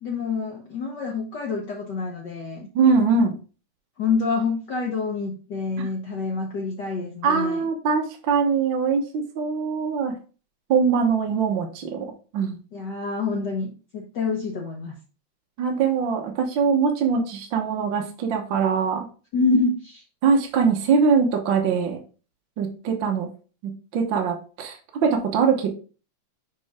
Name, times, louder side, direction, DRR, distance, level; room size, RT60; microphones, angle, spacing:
voice 1, 0.0-2.7 4.0-7.6 12.7-15.0 19.3-20.0, left 4 dB, 80° left, 0 dB, 0.9 m, -27 dB
voice 2, 2.7-3.3 7.2-10.1 10.7-12.0 12.3-12.6 15.6-19.1 20.2-22.0 22.6-23.3 23.9-25.7, right 5 dB, 60° right, 3 dB, 1.3 m, -22 dB
6.4 x 4.6 x 3.5 m, 0.36 s
omnidirectional pair, 3.3 m